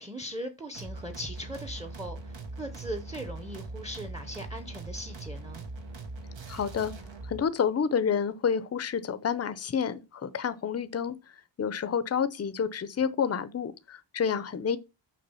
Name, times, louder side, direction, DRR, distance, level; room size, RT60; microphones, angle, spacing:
voice 1, 0.0-5.6, equal, 10° right, 0.8 m, -39 dB
sound 1, 0.7-7.4, right 2 dB, 75° right, 1.5 m, -41 dB
voice 2, 6.5-6.9 7.2-14.8, left 7 dB, 35° left, 0.6 m, -29 dB
6.8 x 5.0 x 5.6 m
wide cardioid pair, 180°, 45 cm